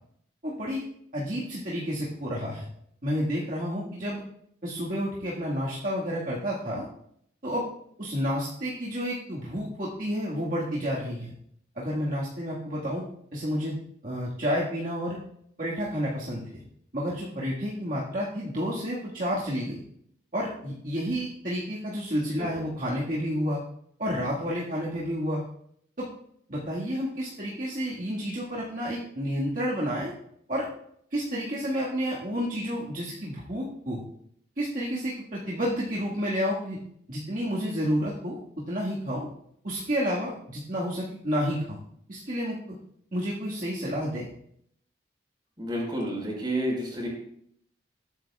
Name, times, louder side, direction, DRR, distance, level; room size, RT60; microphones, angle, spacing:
voice 1, 0.4-0.8 1.1-2.6 3.0-4.2 4.6-6.9 7.4-7.7 8.0-11.3 11.8-13.0 13.3-15.2 15.6-16.6 16.9-19.8 20.3-23.6 24.0-25.4 26.0-26.1 26.5-30.1 30.5-30.7 31.1-34.0 34.6-36.8 37.1-38.4 38.7-39.3 39.6-41.8 42.1-42.8 43.1-44.3, equal, 45° right, -6 dB, 1.8 m, -30 dB
voice 2, 45.6-47.1, right 1 dB, 25° right, -1 dB, 4.5 m, -30 dB
20.0 x 9.0 x 2.4 m, 0.70 s
head